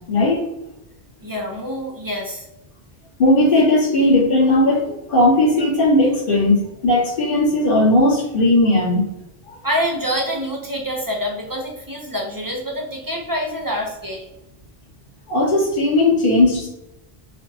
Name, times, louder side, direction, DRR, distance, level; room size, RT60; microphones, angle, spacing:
voice 1, 0.1-0.4 3.2-4.8 5.1-9.0 15.3-16.7, left 1 dB, 60° left, -8 dB, 1.6 m, -16 dB
voice 2, 1.2-2.5 9.6-14.3, equal, 25° right, -1 dB, 0.5 m, -26 dB
4.8 x 2.1 x 2.7 m, 0.88 s
omnidirectional pair, 1.0 m